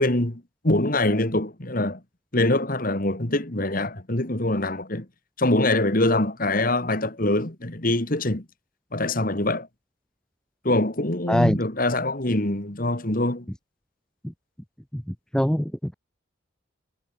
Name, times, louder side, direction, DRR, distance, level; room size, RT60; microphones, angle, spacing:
voice 1, 0.0-2.0 2.3-5.1 5.4-8.4 8.9-9.7 10.6-13.5, left 1 dB, 45° left, 2.3 m, -24 dB
voice 2, 14.9-15.9, equal, 5° left, 0.7 m, -23 dB
head